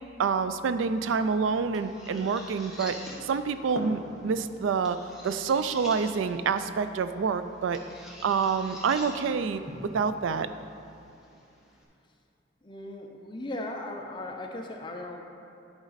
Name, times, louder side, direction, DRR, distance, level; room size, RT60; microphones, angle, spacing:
voice 1, 0.2-3.0 3.2-5.0 5.2-9.6 9.9-10.5, right 5 dB, 80° right, 11 dB, 0.3 m, -27 dB
sound 1, 0.9-11.8, left 1 dB, ahead, 1.1 m, -45 dB
voice 2, 12.6-15.2, left 1 dB, 25° left, 2 dB, 0.6 m, -37 dB
10.5 x 5.0 x 4.0 m, 2.5 s
head